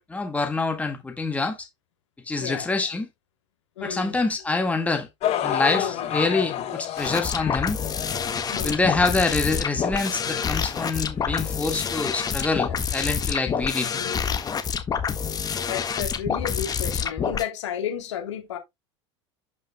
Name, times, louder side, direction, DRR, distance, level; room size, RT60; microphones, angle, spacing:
voice 1, 0.0-1.6 2.3-3.1 3.8-5.1 5.4-7.8 8.6-14.0, left 3 dB, 10° left, 1.7 m, -26 dB
voice 2, 2.4-2.7 3.8-4.2 5.7-6.1 8.5-8.8 12.7-12.8 13.9-14.4 15.7-18.6, left 9 dB, 85° left, 2.7 m, -32 dB
sound 1, 5.2-11.4 12.1-12.2 13.0-13.1, left 10 dB, 45° left, 2.5 m, -31 dB
sound 2, 7.0-17.4, left 7 dB, 25° left, 1.5 m, -27 dB
11.5 x 5.4 x 2.2 m
hypercardioid pair, 100°, 15 cm